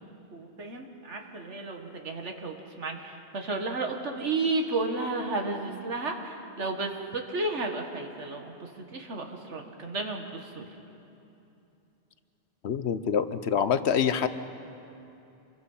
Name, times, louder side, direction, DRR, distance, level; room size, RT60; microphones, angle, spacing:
voice 1, 0.3-10.7, right 3 dB, 90° right, 3 dB, 2.1 m, -33 dB
voice 2, 12.6-14.3, left 7 dB, 70° left, 11 dB, 1.1 m, -26 dB
26.5 x 22.0 x 5.6 m, 2.8 s
omnidirectional pair, 1.2 m